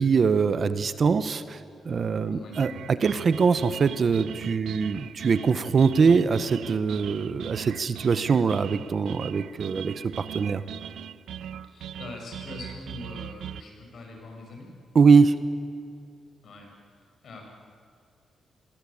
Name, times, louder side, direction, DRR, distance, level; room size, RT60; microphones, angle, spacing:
voice 1, 0.0-10.6 14.9-15.4, right 5 dB, 40° right, 13 dB, 1.0 m, -23 dB
sound 1, 2.5-13.6, right 10 dB, 85° right, 0.7 m, -40 dB
voice 2, 11.6-14.7 16.4-17.4, left 2 dB, 55° left, 1 dB, 6.9 m, -43 dB
29.0 x 22.5 x 8.7 m, 2.4 s
wide cardioid pair, 155°, 0 cm